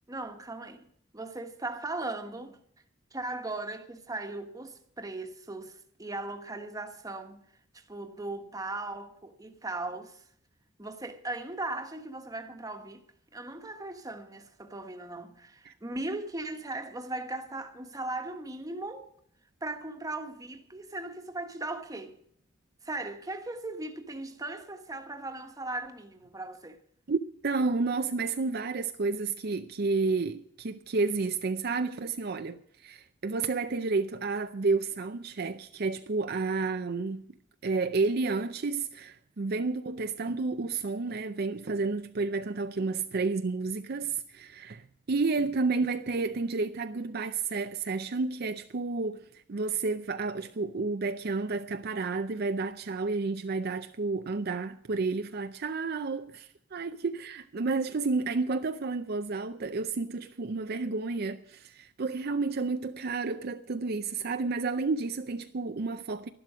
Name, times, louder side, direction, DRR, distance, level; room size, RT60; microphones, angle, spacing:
voice 1, 0.1-0.9 1.1-2.6 3.1-7.4 7.7-10.2 10.8-13.0 13.3-19.1 19.6-22.2 22.8-26.8, right 2 dB, 20° right, 1.3 m, -38 dB
voice 2, 27.1-37.3 37.6-66.3, right 3 dB, 55° right, 0.5 m, -31 dB
12.0 x 11.5 x 6.2 m
head